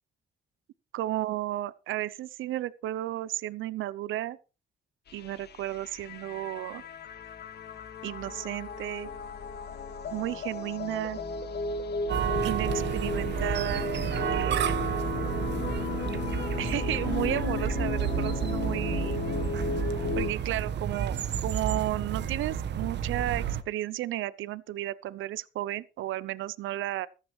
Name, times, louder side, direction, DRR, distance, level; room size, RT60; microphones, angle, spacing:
voice 1, 0.9-4.4 5.1-6.8 8.0-9.1 10.1-11.2 12.4-13.9 14.3-14.8 16.6-19.2 20.2-27.1, right 14 dB, 80° right, 0.6 m, -33 dB
sound 1, 5.1-20.3, left 4 dB, 55° left, 1.7 m, -35 dB
sound 2, 12.1-23.6, right 8 dB, 60° right, 1.2 m, -31 dB
14.5 x 13.5 x 3.2 m
cardioid pair, 90°, 20 cm